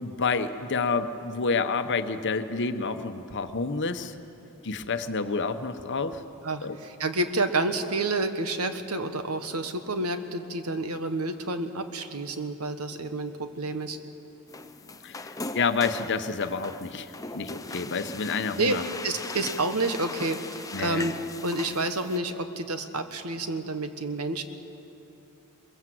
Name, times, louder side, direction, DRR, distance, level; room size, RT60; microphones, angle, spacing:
voice 1, 0.0-4.1 4.6-6.2 6.6-6.8 15.0-18.8 20.7-21.0, left 4 dB, 55° left, 9 dB, 1.0 m, -29 dB
voice 2, 6.4-14.0 18.6-18.8 19.0-21.1 21.4-24.4, right 2 dB, 75° right, 8 dB, 1.4 m, -29 dB
sound 1, 14.5-22.2, left 3 dB, 15° left, 0.6 m, -39 dB
22.5 x 22.0 x 7.8 m, 3.0 s
head